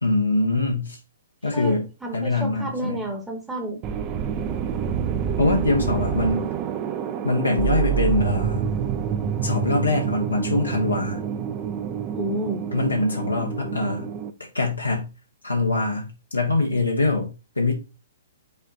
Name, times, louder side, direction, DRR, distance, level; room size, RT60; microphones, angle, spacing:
voice 1, 0.0-1.0 1.4-1.9 2.1-3.0 5.4-6.5 7.2-8.6 9.4-11.2 12.7-14.1 14.5-15.1 15.4-17.7, left 2 dB, 85° left, 0 dB, 1.1 m, -23 dB
voice 2, 1.5-3.9 12.1-12.6, right 1 dB, 5° right, 1 dB, 1.0 m, -30 dB
sound 1, 3.8-14.3, right 8 dB, 30° right, 0.5 m, -27 dB
5.6 x 2.4 x 3.9 m, 0.31 s
figure-of-eight pair, 115°, 0 cm